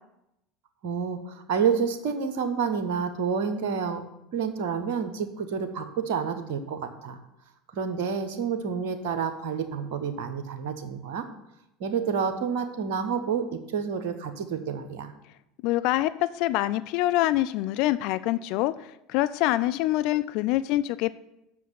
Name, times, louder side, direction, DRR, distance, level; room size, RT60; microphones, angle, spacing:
voice 1, 0.8-4.0 4.3-7.2 7.7-11.3 11.8-15.1, right 6 dB, 60° right, 8 dB, 1.0 m, -29 dB
voice 2, 15.6-21.1, left 15 dB, 55° left, 13 dB, 0.3 m, -25 dB
7.8 x 6.3 x 7.5 m, 0.86 s
figure-of-eight pair, 70°, 0 cm